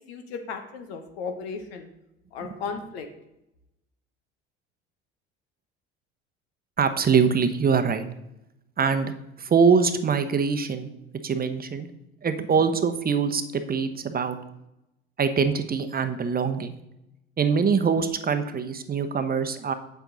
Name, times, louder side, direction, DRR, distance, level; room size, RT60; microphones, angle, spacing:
voice 1, 0.1-1.9 2.3-3.1, left 5 dB, 75° left, 6 dB, 1.2 m, -35 dB
voice 2, 6.8-8.0 8.8-10.9 11.2-11.9 12.2-14.4 15.2-16.7 17.4-19.7, right 6 dB, 30° right, 9 dB, 0.9 m, -23 dB
7.8 x 7.3 x 4.0 m, 0.86 s
hypercardioid pair, 65°, 32 cm